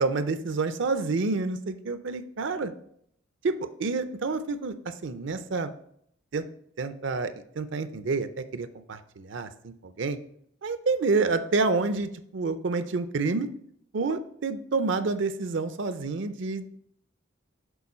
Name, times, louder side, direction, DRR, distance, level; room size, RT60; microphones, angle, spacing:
voice 1, 0.0-2.7 3.4-5.7 6.3-6.4 6.8-10.2 10.6-13.5 13.9-16.8, right 3 dB, 60° right, 11 dB, 0.5 m, -28 dB
7.0 x 4.4 x 4.2 m, 0.69 s
head